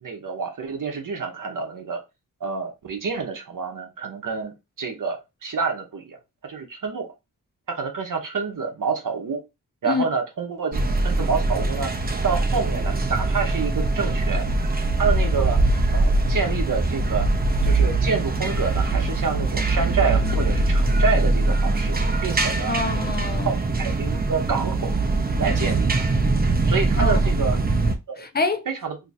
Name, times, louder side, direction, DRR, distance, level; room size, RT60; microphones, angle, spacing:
voice 1, 0.0-2.0 2.4-7.1 7.7-9.4 9.8-11.9 12.2-14.5 15.0-15.6 15.9-17.3 17.6-22.8 23.4-24.9 25.4-26.1 26.7-27.6 28.1-28.2 28.7-29.0, right 5 dB, 65° right, 0.8 m, -28 dB
sound 1, 10.7-28.0, right 2 dB, 25° right, 0.5 m, -22 dB
voice 2, 22.7-23.5 27.0-27.5 28.2-28.7, left 3 dB, 30° left, 0.5 m, -26 dB
2.7 x 2.4 x 4.0 m
wide cardioid pair, 120°, 34 cm